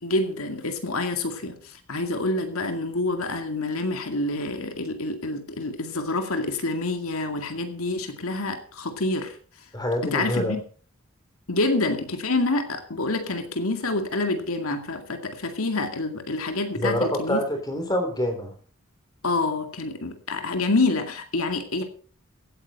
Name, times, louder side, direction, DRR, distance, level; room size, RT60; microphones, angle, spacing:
voice 1, 0.0-9.4 10.0-10.6 11.5-17.4 19.2-21.8, left 2 dB, 80° left, 6 dB, 2.2 m, -27 dB
voice 2, 9.7-10.6 16.8-18.5, equal, 20° left, 5 dB, 3.6 m, -26 dB
16.0 x 9.4 x 5.4 m, 0.43 s
head